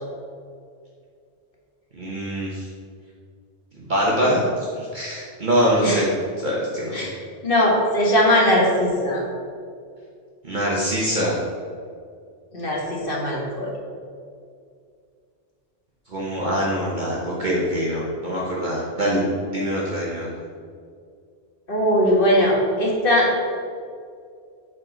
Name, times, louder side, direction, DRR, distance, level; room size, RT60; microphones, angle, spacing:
voice 1, 1.9-2.7 3.8-4.4 4.8-6.1 6.4-7.1 10.4-11.3 16.1-20.3, equal, 45° right, -5 dB, 1.2 m, -24 dB
voice 2, 7.4-9.2 12.5-13.7 21.7-23.3, equal, 55° left, -3 dB, 1.8 m, -20 dB
8.5 x 4.6 x 5.1 m, 2.3 s
omnidirectional pair, 1.1 m